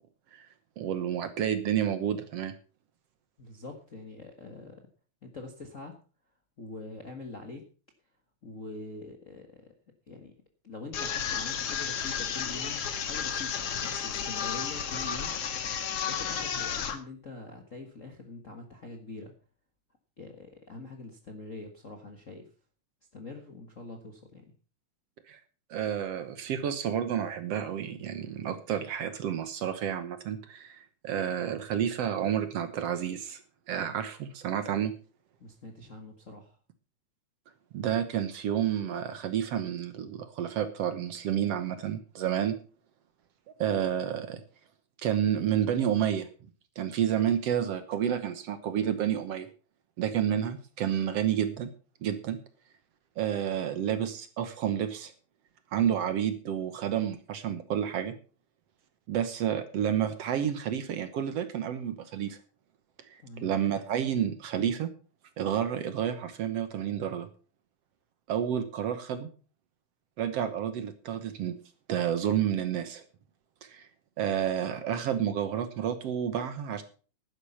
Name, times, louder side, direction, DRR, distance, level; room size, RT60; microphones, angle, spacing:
voice 1, 0.8-2.5 25.3-25.4 25.7-33.4 33.7-34.9 37.7-42.6 43.6-44.4 45.0-46.3 46.8-49.5 50.0-51.7 52.0-52.4 53.2-55.1 55.7-58.2 59.1-62.4 63.1-64.9 65.4-67.3 68.3-69.3 70.2-71.6 71.9-73.0 73.6-73.9 74.2-76.8, right 9 dB, 65° right, 10 dB, 1.9 m, -30 dB
voice 2, 3.4-4.8 5.2-5.9 6.6-7.6 8.4-9.7 10.1-10.3 10.6-13.5 13.8-15.3 16.0-19.3 20.2-22.4 23.1-24.4 33.7-34.0 35.4-36.6 63.2-63.5, left 3 dB, 40° left, 3 dB, 1.1 m, -44 dB
sound 1, 10.9-17.0, left 7 dB, 55° left, 2.2 m, -32 dB
12.0 x 9.8 x 5.6 m, 0.38 s
omnidirectional pair, 3.5 m